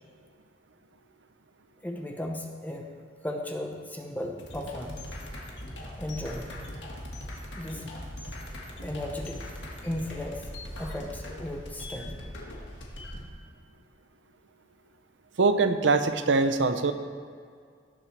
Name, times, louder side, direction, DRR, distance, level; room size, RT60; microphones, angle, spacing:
voice 1, 1.8-2.9 3.2-5.0 6.0-6.6 7.6-7.9 8.8-9.4 9.8-10.5 10.8-12.2, left 1 dB, 10° left, 2 dB, 0.7 m, -35 dB
sound 1, 4.4-13.3, left 1 dB, 75° left, 1.8 m, -40 dB
voice 2, 15.4-16.9, right 3 dB, 80° right, 9 dB, 0.7 m, -23 dB
18.0 x 7.6 x 3.3 m, 2.2 s
head